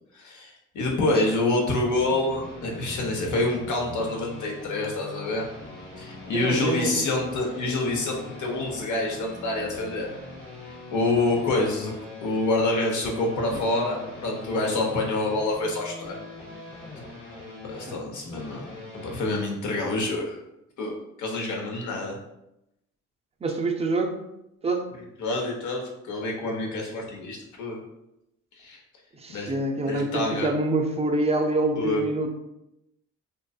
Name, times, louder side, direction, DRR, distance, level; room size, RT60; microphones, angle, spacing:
voice 1, 0.1-5.5 6.0-10.1 10.9-11.9 12.2-16.2 17.6-18.7 19.0-20.4 20.8-20.9 21.2-22.2 25.2-27.8 28.6-28.8 29.3-29.5 29.8-30.5 31.8-32.0, left 2 dB, 65° left, 0 dB, 0.8 m, -27 dB
sound 1, 1.9-19.2, left 2 dB, 35° left, 1.2 m, -42 dB
voice 2, 6.3-7.1 23.4-24.2 24.6-24.9 29.1-32.3, right 2 dB, 20° right, 3 dB, 0.4 m, -26 dB
2.5 x 2.3 x 2.3 m, 0.86 s
supercardioid pair, 65°, 33 cm